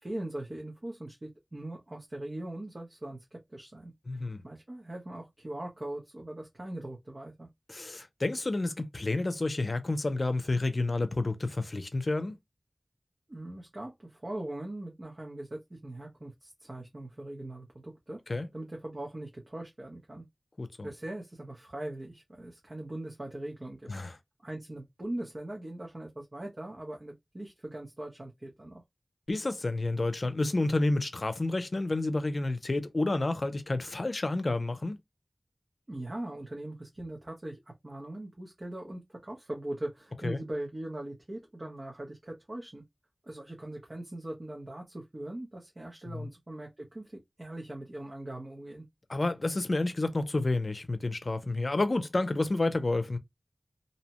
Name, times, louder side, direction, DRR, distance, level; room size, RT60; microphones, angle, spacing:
voice 1, 0.0-3.9 4.2-7.5 13.3-18.2 18.5-20.3 20.8-23.9 24.4-28.8 35.9-42.8 43.2-48.9, right 1 dB, 50° right, 0.8 m, -41 dB
voice 2, 4.1-4.4 7.7-12.4 18.3-18.5 20.6-20.9 23.9-24.1 29.3-35.0 40.2-40.4 46.0-46.3 49.1-53.2, left 2 dB, 60° left, 0.5 m, -30 dB
2.7 x 2.1 x 2.9 m
wide cardioid pair, 55°, 0 cm